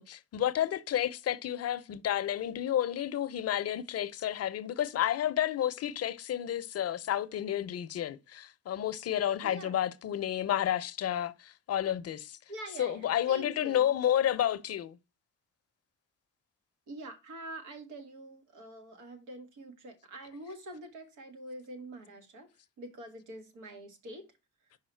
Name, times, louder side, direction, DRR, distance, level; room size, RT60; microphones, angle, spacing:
voice 1, 0.0-12.4 12.8-15.0, left 11 dB, 55° left, 0.6 m, -31 dB
voice 2, 9.4-9.8 12.5-14.0 16.9-22.5 22.8-24.3, right 1 dB, 85° right, 1.5 m, -45 dB
5.6 x 4.7 x 4.4 m
cardioid pair, 90°, 30 cm